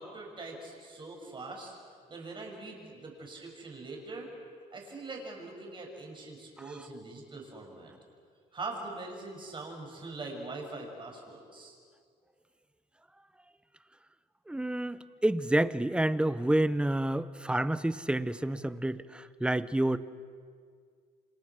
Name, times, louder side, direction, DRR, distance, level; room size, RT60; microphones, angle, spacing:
voice 1, 0.0-1.8 2.1-4.3 4.7-7.9 8.5-11.8, right 3 dB, 30° right, 0 dB, 7.4 m, -42 dB
voice 2, 14.5-20.0, right 1 dB, 5° right, 14 dB, 0.9 m, -29 dB
29.5 x 26.5 x 6.4 m, 2.1 s
cardioid pair, 110°, 17 cm